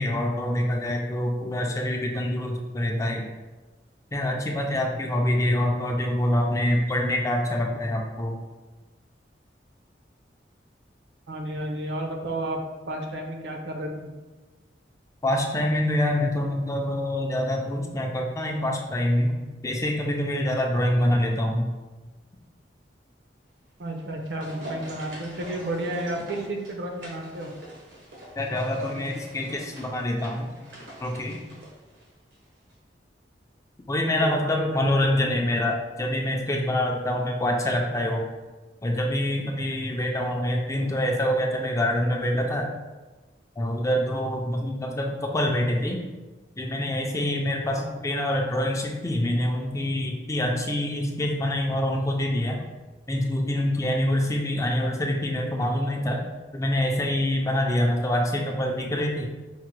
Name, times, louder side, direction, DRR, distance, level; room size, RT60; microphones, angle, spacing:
voice 1, 0.0-3.3 4.1-8.4 15.2-19.4 19.6-21.7 28.4-30.5 31.0-31.4 33.9-38.3 38.8-42.7 43.6-46.0 46.6-52.6 53.1-56.2 56.5-59.3, left 1 dB, 15° left, 1 dB, 0.4 m, -25 dB
voice 2, 11.3-12.6 12.9-14.1 23.8-27.5 34.1-35.1 47.7-47.9, right 1 dB, 70° right, 2 dB, 0.6 m, -32 dB
sound 1, 23.8-32.4 32.7-32.8, equal, 85° right, 1.0 m, -44 dB
5.6 x 2.1 x 3.1 m, 1.2 s
head